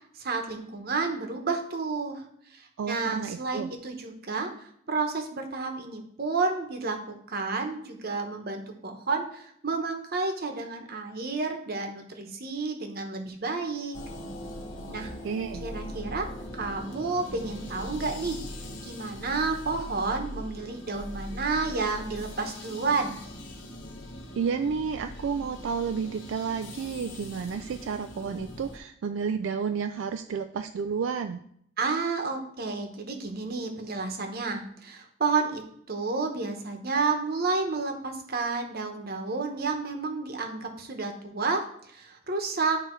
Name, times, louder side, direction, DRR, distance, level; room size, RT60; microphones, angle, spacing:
voice 1, 0.1-2.2 2.5-14.0 14.9-15.1 15.6-16.3 16.5-18.4 18.8-23.2 31.8-35.6 35.9-42.8, right 4 dB, 55° right, 4 dB, 1.1 m, -30 dB
voice 2, 2.8-3.7 14.8-14.9 15.2-15.6 24.4-31.4, right 6 dB, 85° right, 8 dB, 0.3 m, -31 dB
sound 1, 13.9-28.8, left 1 dB, 80° left, 1.2 m, -41 dB
9.8 x 3.4 x 4.5 m, 0.67 s
head